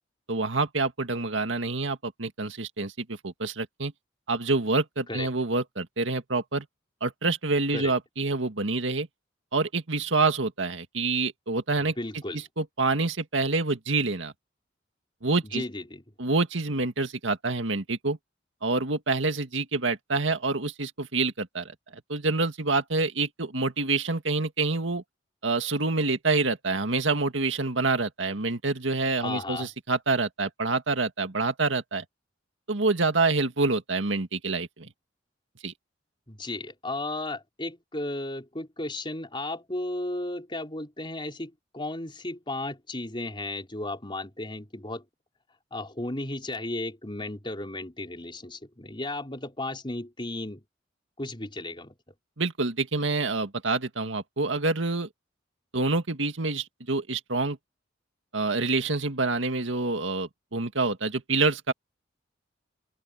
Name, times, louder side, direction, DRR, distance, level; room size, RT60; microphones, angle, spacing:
voice 1, 0.3-3.9 4.3-6.7 7.0-9.1 9.5-12.0 12.3-14.3 15.2-15.6 16.2-18.2 18.6-21.7 22.1-25.0 25.4-32.0 32.7-34.9 35.6-35.7 52.4-55.1 55.7-57.6 58.3-61.7, right 3 dB, 80° right, 2.0 m, -27 dB
voice 2, 11.8-12.4 15.5-16.0 29.2-29.7 36.3-45.0 45.7-50.6 51.2-51.9, left 2 dB, 25° left, 4.3 m, -34 dB
open air
head